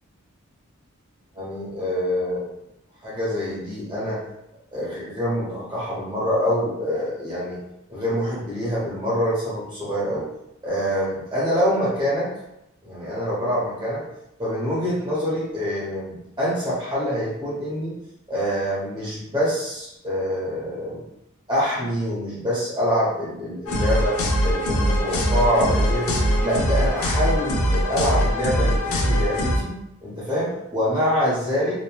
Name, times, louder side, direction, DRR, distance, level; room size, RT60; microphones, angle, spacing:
voice 1, 1.3-2.5 3.0-4.2 4.7-7.6 7.9-10.3 10.6-12.3 12.8-14.1 14.4-18.0 18.3-21.0 21.5-29.8 30.0-31.7, equal, 20° right, -8 dB, 0.8 m, -25 dB
sound 1, 23.7-29.6, equal, 75° left, 0.5 m, -22 dB
3.0 x 2.2 x 2.2 m, 0.84 s
head